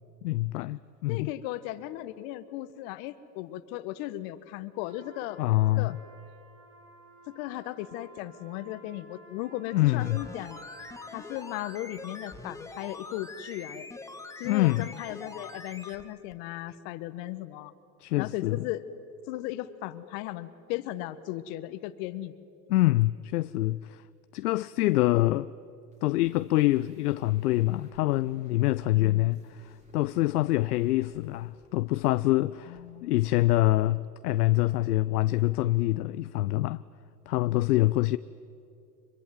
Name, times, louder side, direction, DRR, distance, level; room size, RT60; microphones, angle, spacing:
voice 1, 0.2-1.3 5.4-6.0 9.7-10.2 14.5-14.9 18.0-18.6 22.7-24.0 24.3-25.5 26.0-36.8 37.3-38.2, left 17 dB, 70° left, 0.6 m, -25 dB
voice 2, 1.1-5.4 5.8-5.9 7.3-10.6 11.1-13.9 14.4-17.7 18.2-18.8 19.3-22.3 28.9-29.3 32.7-33.2, left 15 dB, 55° left, 1.5 m, -37 dB
Trumpet, 4.8-11.8, right 1 dB, 75° right, 6.9 m, -53 dB
sound 1, 9.9-16.0 16.3-16.4, left 2 dB, 5° left, 1.8 m, -44 dB
sound 2, 25.9-32.2 32.5-32.8 33.1-33.2, equal, 15° right, 7.2 m, -61 dB
25.0 x 22.5 x 9.2 m
hypercardioid pair, 100°, 48 cm